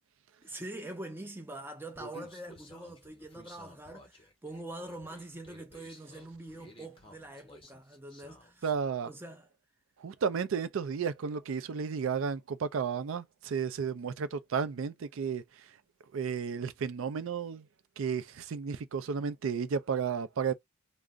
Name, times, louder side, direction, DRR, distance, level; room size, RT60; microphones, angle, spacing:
voice 1, 0.4-8.7 9.0-9.5, right 1 dB, 10° right, 0.5 m, -44 dB
Human voice, 1.9-8.8, left 1 dB, 25° left, 0.7 m, -53 dB
voice 2, 8.6-9.1 10.0-15.4 16.1-17.7 18.0-20.5, right 6 dB, 65° right, 0.4 m, -33 dB
2.5 x 2.0 x 3.5 m
head